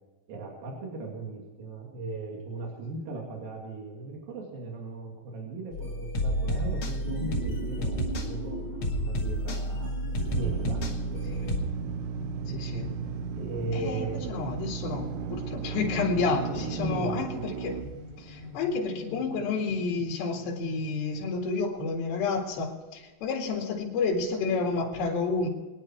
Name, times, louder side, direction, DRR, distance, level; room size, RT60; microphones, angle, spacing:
voice 1, 0.3-9.9 10.4-10.8 13.4-14.3 16.7-17.3, right 3 dB, 60° right, 0 dB, 4.0 m, -37 dB
sound 1, 5.7-11.6, equal, 40° left, 2.4 m, -31 dB
sound 2, 6.7-21.4, left 1 dB, 10° right, 6.2 m, -44 dB
Drill, 10.1-18.8, right 7 dB, 85° right, 1.8 m, -35 dB
voice 2, 12.5-12.9 13.7-17.8 18.2-25.5, left 4 dB, 80° left, -1 dB, 4.3 m, -30 dB
24.0 x 10.5 x 4.6 m, 1.3 s
omnidirectional pair, 4.9 m